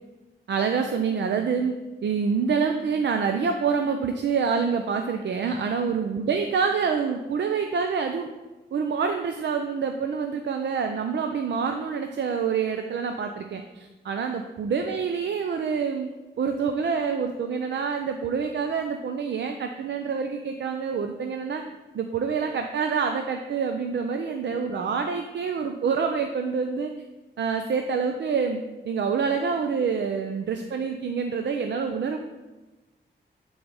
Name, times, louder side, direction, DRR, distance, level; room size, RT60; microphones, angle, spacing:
voice 1, 0.5-1.8 2.0-8.3 8.7-16.1 16.4-21.6 21.9-26.9 27.4-32.2, right 6 dB, 70° right, 6 dB, 0.5 m, -27 dB
10.5 x 4.0 x 4.8 m, 1.2 s
wide cardioid pair, 95°, 19 cm